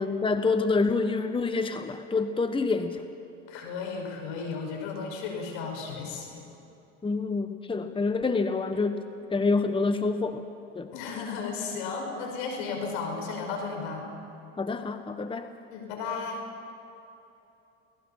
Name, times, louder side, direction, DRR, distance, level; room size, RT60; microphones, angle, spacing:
voice 1, 0.0-3.0 7.0-9.0 9.3-10.4 10.7-10.9 14.6-15.5, left 3 dB, 15° left, 8 dB, 1.2 m, -27 dB
voice 2, 3.5-6.4 10.9-14.1 15.7-16.5, left 5 dB, 75° left, 2 dB, 5.6 m, -34 dB
29.5 x 18.5 x 5.7 m, 2.9 s
supercardioid pair, 90°, 33 cm